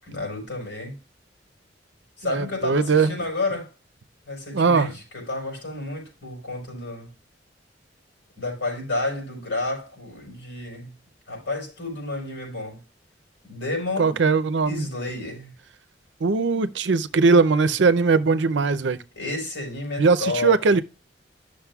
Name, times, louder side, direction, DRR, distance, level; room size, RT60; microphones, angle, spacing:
voice 1, 0.1-1.0 2.2-3.7 4.3-7.1 8.4-10.9 11.3-12.8 13.4-14.1 14.6-15.5 19.1-20.5, left 2 dB, 90° left, 5.1 m, -31 dB
voice 2, 2.3-3.2 4.5-4.9 14.0-14.9 16.2-19.0 20.0-20.8, right 4 dB, 80° right, 0.6 m, -20 dB
12.0 x 6.4 x 2.3 m
head